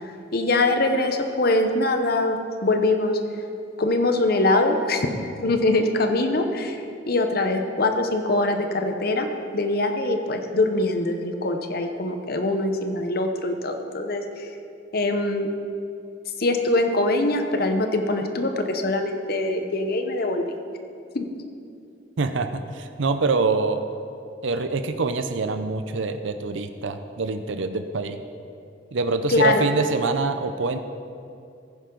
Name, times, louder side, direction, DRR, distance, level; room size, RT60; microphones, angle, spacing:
voice 1, 0.3-3.2 3.8-6.8 7.1-9.3 9.5-14.5 14.9-15.5 16.4-20.6 21.1-21.3 29.3-29.7, left 2 dB, 50° left, 6 dB, 0.9 m, -23 dB
voice 2, 22.2-23.8 24.4-28.2 28.9-30.8, right 3 dB, 80° right, 8 dB, 0.6 m, -25 dB
15.0 x 10.0 x 3.9 m, 2.5 s
head